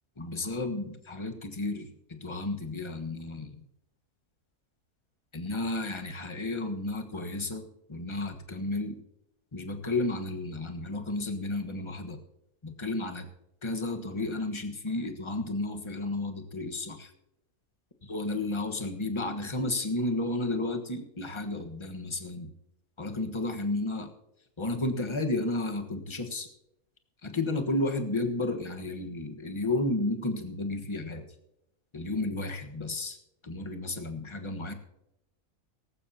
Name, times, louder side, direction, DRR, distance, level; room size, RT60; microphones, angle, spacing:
voice 1, 0.2-3.6 5.3-9.0 9.5-12.2 12.6-13.3 13.6-17.1 18.0-22.5 23.0-24.1 24.6-26.5 27.2-31.2 31.9-33.2 33.4-34.7, left 2 dB, 20° left, 4 dB, 1.2 m, -32 dB
18.0 x 15.0 x 2.8 m, 0.86 s
omnidirectional pair, 1.7 m